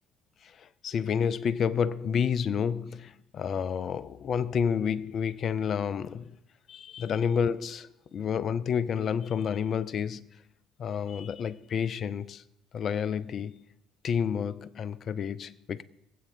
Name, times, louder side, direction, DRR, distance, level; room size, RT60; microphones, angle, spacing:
voice 1, 0.4-6.3 6.7-10.2 10.8-12.4 12.7-13.6 14.0-15.8, left 7 dB, 50° left, 0.5 m, -30 dB
22.0 x 8.6 x 2.7 m
hypercardioid pair, 55°, 0 cm